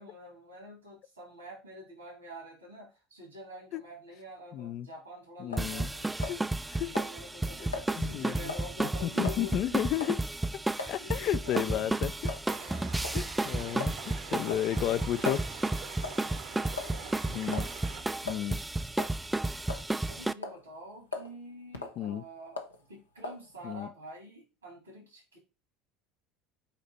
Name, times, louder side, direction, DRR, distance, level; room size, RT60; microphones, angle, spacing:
voice 1, 0.0-6.3 6.8-9.8 10.8-11.9 12.5-13.0 14.2-15.0 15.8-17.5 17.9-18.5 20.1-22.6 22.9-25.4, equal, 90° right, 3.7 m, -47 dB
voice 2, 4.5-4.9 5.4-5.9 6.3-6.4 6.7-6.9 8.0-8.5 8.8-10.2 10.9-12.3 13.1-15.4 17.3-17.7 18.2-18.6 22.0-22.2 23.6-23.9, left 12 dB, 50° left, 0.4 m, -32 dB
sound 1, 5.5-5.7 6.2-6.7 6.9-7.1 7.7-7.9 8.5-8.7 9.2-9.4 10.0-10.2 10.8-10.9 11.5-11.7 12.3-12.4 13.0-13.2 13.8-14.0 14.5-15.5 16.0-16.3 16.8-17.1 17.5-17.7 18.3-18.4 18.9-19.2 19.7-20.1 20.4-20.6 21.1-21.3 21.7-22.0 22.6-22.8 23.2-23.4, left 3 dB, 85° left, 0.8 m, -38 dB
sound 2, 5.6-20.3, right 2 dB, 10° right, 0.3 m, -33 dB
sound 3, 12.5-18.0, right 7 dB, 60° right, 1.1 m, -46 dB
8.6 x 2.9 x 4.1 m
figure-of-eight pair, 70°, 0 cm